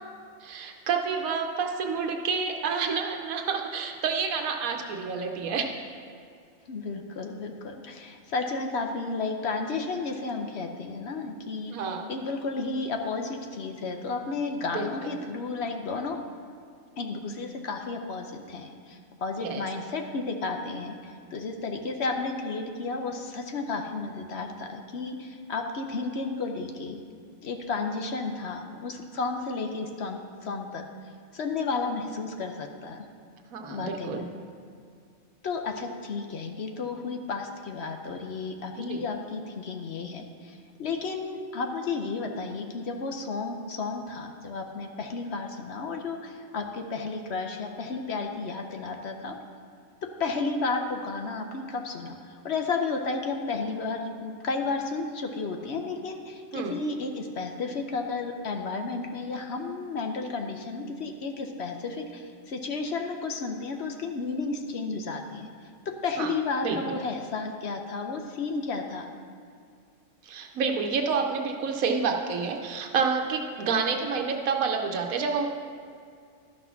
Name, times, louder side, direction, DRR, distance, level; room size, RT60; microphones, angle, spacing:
voice 1, 0.4-5.7 11.7-12.1 14.7-14.9 19.4-19.6 33.5-34.2 38.8-39.0 56.5-56.8 66.2-66.3 66.6-66.9 70.2-75.5, right 5 dB, 85° right, 3 dB, 1.2 m, -29 dB
voice 2, 6.7-16.2 17.0-27.0 27.4-30.8 31.3-33.1 33.7-34.3 35.4-49.4 50.2-65.5 66.0-69.1, left 4 dB, 55° left, 4 dB, 0.9 m, -32 dB
12.0 x 6.1 x 5.7 m, 2.3 s
omnidirectional pair, 1.4 m